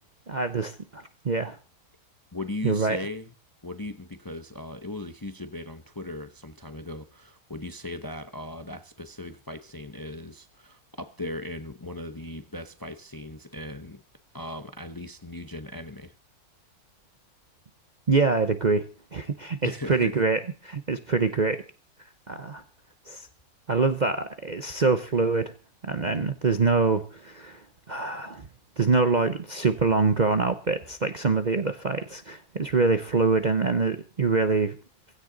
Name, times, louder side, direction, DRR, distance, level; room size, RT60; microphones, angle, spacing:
voice 1, 0.3-1.6 2.6-3.0 18.1-18.8 19.1-21.6 22.3-22.6 23.1-23.3 23.7-25.5 25.8-27.6 27.9-28.5 28.8-34.7, right 4 dB, 40° right, 9 dB, 0.8 m, -25 dB
voice 2, 2.3-3.3 3.6-14.0 14.3-16.1 19.6-20.2, left 1 dB, 20° left, 9 dB, 0.7 m, -38 dB
16.5 x 16.0 x 3.9 m, 0.35 s
omnidirectional pair, 1.6 m